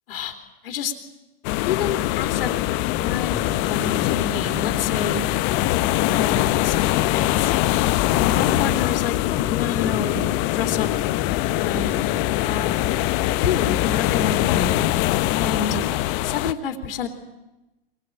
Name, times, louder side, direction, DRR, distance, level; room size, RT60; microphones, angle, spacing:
sound 1, 1.4-16.5, left 16 dB, 40° left, 1.1 m, -22 dB
voice 1, 1.6-5.2 6.0-7.5 8.1-10.2 10.5-10.9 11.5-11.9 12.4-12.8 13.4-14.7 15.3-15.8 16.2-17.1, left 7 dB, 70° left, 6 dB, 2.9 m, -29 dB
sound 2, 2.8-16.0, left 7 dB, 15° left, 1.0 m, -36 dB
23.5 x 20.5 x 8.9 m, 1.0 s
hypercardioid pair, 115°, 30 cm